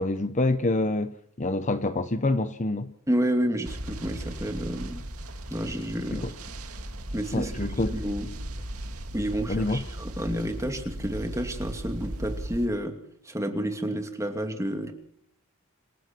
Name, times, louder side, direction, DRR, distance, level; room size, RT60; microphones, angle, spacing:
voice 1, 0.0-2.9 6.2-6.3 7.3-7.9 9.5-9.8, left 2 dB, 35° left, 0.9 m, -26 dB
voice 2, 3.1-5.0 5.5-6.3 7.1-8.3 9.1-13.0 13.3-14.9, equal, 15° right, 2.5 m, -30 dB
sound 1, 3.6-12.7, right 1 dB, 80° right, 2.3 m, -37 dB
27.0 x 16.5 x 6.0 m
head